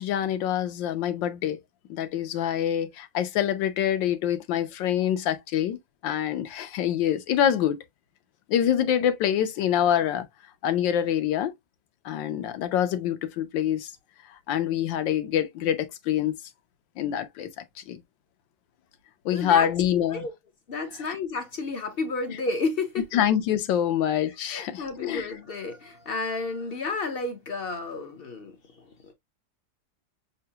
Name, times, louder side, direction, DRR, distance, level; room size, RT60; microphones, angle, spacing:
voice 1, 0.0-1.6 1.9-7.8 8.5-10.3 10.6-11.5 12.0-13.9 14.5-16.3 17.0-18.0 19.2-20.2 23.1-25.2, left 10 dB, 75° left, 1.5 m, -25 dB
voice 2, 19.3-20.3 20.7-23.2 24.4-29.1, left 3 dB, 50° left, 0.7 m, -32 dB
6.7 x 2.3 x 2.8 m
omnidirectional pair, 2.0 m